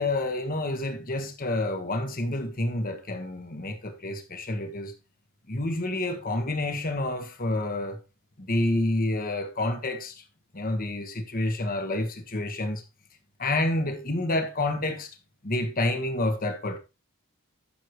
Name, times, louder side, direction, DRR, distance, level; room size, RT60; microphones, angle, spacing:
voice 1, 0.0-4.9 5.5-8.0 8.4-10.2 10.5-12.8 13.4-15.1 15.4-16.8, left 2 dB, 40° left, 1.3 m, -28 dB
12.5 x 6.6 x 3.1 m
head